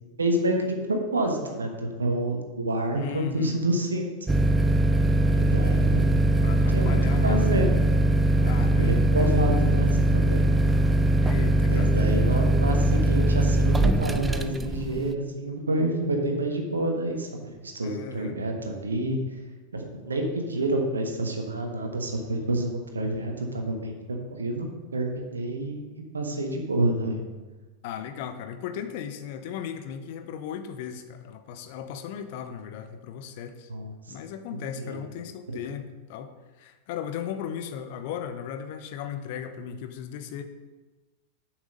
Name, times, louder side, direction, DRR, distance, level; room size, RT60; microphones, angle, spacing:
voice 1, 0.2-4.1 5.3-6.1 6.4-7.8 8.4-10.4 11.7-19.2 19.7-25.8 26.1-27.2 33.7-34.2 34.7-35.0 35.5-35.7, right 1 dB, 75° right, 3 dB, 1.3 m, -28 dB
voice 2, 2.9-3.6 6.4-7.5 8.4-9.3 11.2-12.0 17.8-18.4 27.8-33.7 34.1-40.4, left 8 dB, 50° left, 8 dB, 0.7 m, -36 dB
sound 1, 4.3-15.1, right 1 dB, 10° right, 0.4 m, -21 dB
7.4 x 6.3 x 5.3 m, 1.2 s
figure-of-eight pair, 90°, 0 cm